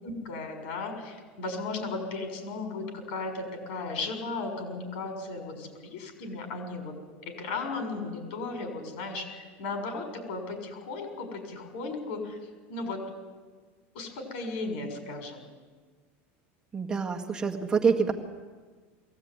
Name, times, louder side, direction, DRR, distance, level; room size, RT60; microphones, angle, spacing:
voice 1, 0.0-7.0 7.2-12.4 12.7-13.0 13.9-15.4, left 3 dB, 70° left, 4 dB, 6.4 m, -35 dB
voice 2, 16.7-18.1, right 5 dB, 10° right, 1 dB, 1.9 m, -26 dB
22.5 x 16.5 x 9.7 m, 1.5 s
supercardioid pair, 165°, 6 cm